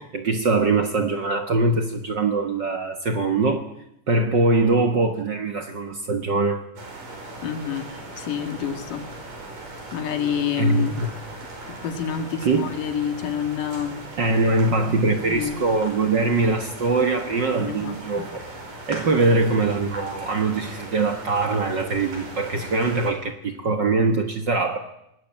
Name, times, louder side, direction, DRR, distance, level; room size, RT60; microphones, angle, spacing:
voice 1, 0.0-3.7 4.1-6.6 10.6-11.1 12.4-12.7 14.2-18.3 18.9-24.8, right 3 dB, 45° right, 1.6 m, -22 dB
sound 1, 6.8-23.1, right 2 dB, 90° right, 6.3 m, -39 dB
voice 2, 7.4-7.9 8.2-9.1 9.9-11.0 11.8-14.0 15.2-15.6 17.6-18.3, left 8 dB, 85° left, 3.6 m, -28 dB
25.0 x 19.5 x 8.8 m
omnidirectional pair, 3.6 m